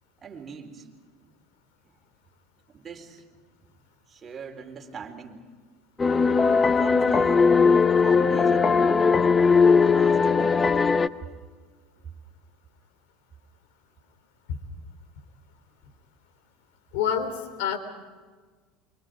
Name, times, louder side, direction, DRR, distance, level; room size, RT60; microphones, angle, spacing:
voice 1, 0.2-0.9 1.2-1.3 2.7-3.2 4.1-5.5 6.7-7.6 8.0-8.8 9.7-10.9, right 6 dB, 25° right, 3 dB, 4.1 m, -41 dB
sound 1, 6.0-11.1, left 5 dB, 20° left, 0.8 m, -19 dB
voice 2, 16.9-17.8, left 8 dB, 75° left, 10 dB, 3.6 m, -27 dB
28.5 x 25.5 x 5.2 m, 1.5 s
supercardioid pair, 110°, 0 cm